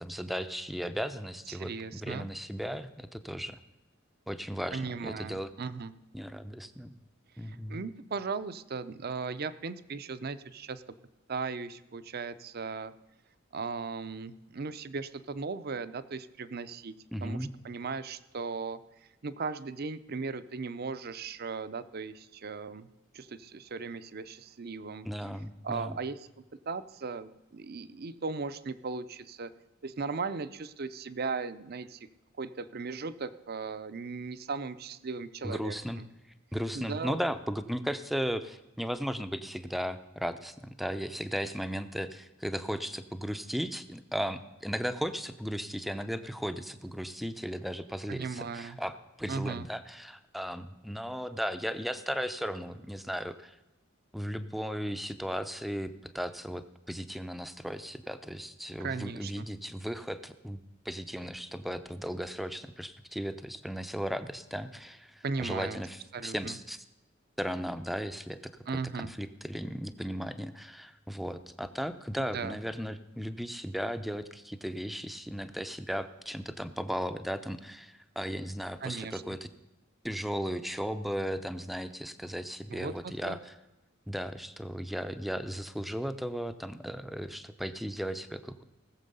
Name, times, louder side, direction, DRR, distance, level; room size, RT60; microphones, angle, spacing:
voice 1, 0.0-1.7 2.0-3.6 4.3-5.5 6.1-6.9 7.4-7.8 17.1-17.5 25.1-26.0 35.4-36.0 36.5-53.5 54.1-60.6 60.9-66.8 67.4-68.5 69.0-79.5 80.0-83.5 84.1-88.6, equal, ahead, 10 dB, 0.5 m, -36 dB
voice 2, 1.5-2.3 4.7-5.9 7.4-10.8 11.3-12.9 13.5-16.9 17.2-17.4 17.6-18.8 19.2-22.9 23.1-25.1 25.6-26.3 26.7-29.5 29.8-32.1 32.4-36.1 36.7-37.2 48.1-48.8 49.3-49.7 58.8-59.5 65.2-65.8 66.1-66.6 68.7-69.1 72.2-72.6 78.8-79.2 82.7-83.4, right 4 dB, 50° right, 13 dB, 0.6 m, -37 dB
18.5 x 7.4 x 5.4 m, 1.0 s
head